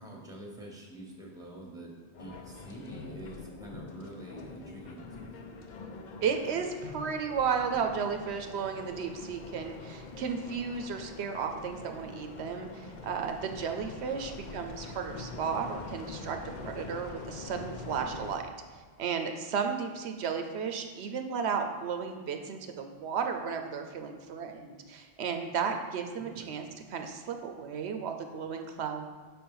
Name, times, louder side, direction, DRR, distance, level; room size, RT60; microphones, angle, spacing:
voice 1, 0.0-1.9 2.2-5.5 14.1-14.5 26.2-26.6, right 1 dB, 5° right, -1 dB, 1.0 m, -46 dB
sound 1, 2.1-18.4, left 3 dB, 55° left, 0.6 m, -44 dB
voice 2, 6.2-18.5 19.0-26.7 26.9-29.1, right 6 dB, 80° right, 5 dB, 0.9 m, -34 dB
5.8 x 4.3 x 5.4 m, 1.5 s
omnidirectional pair, 1.1 m